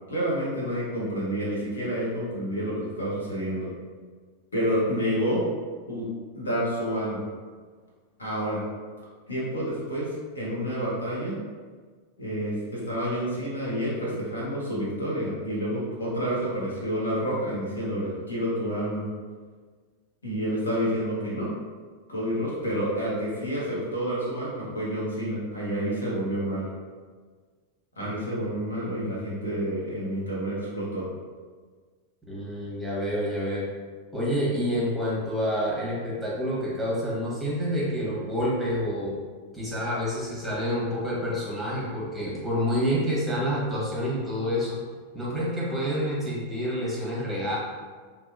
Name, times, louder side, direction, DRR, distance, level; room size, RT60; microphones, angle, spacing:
voice 1, 0.1-3.7 4.5-5.4 5.9-6.1 6.3-7.2 8.2-8.6 9.3-11.4 12.2-19.0 20.2-21.5 22.1-26.7 28.0-31.1, equal, 75° left, -7 dB, 0.9 m, -29 dB
voice 2, 32.3-33.7 34.1-39.1 39.5-44.8 45.1-47.6, equal, ahead, -7 dB, 0.9 m, -28 dB
2.7 x 2.1 x 2.4 m, 1.5 s
figure-of-eight pair, 90°, 0 cm